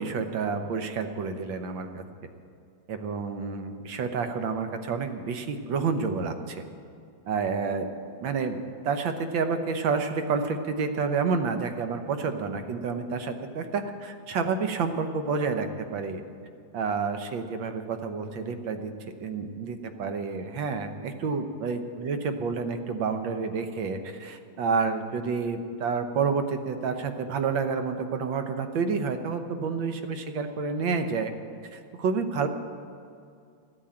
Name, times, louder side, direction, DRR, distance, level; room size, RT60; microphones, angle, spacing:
voice 1, 0.0-2.0 2.9-6.6 7.3-7.9 8.2-16.2 16.7-18.9 19.2-31.3 31.7-32.5, right 5 dB, 70° right, 8 dB, 1.7 m, -29 dB
14.0 x 9.5 x 8.7 m, 2.4 s
omnidirectional pair, 2.3 m